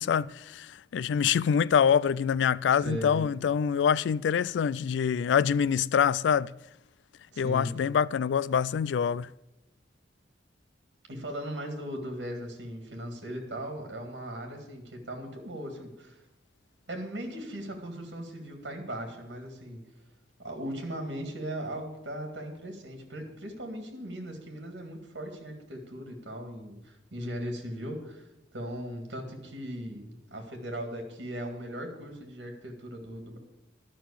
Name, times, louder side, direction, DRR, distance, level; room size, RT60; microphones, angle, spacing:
voice 1, 0.0-6.5 7.4-9.3, left 7 dB, 70° left, 0.3 m, -25 dB
voice 2, 2.8-3.2 7.3-7.7 11.1-16.2 16.9-19.8 20.4-28.3 28.5-33.4, equal, 70° right, 2.1 m, -38 dB
11.5 x 6.1 x 8.4 m
head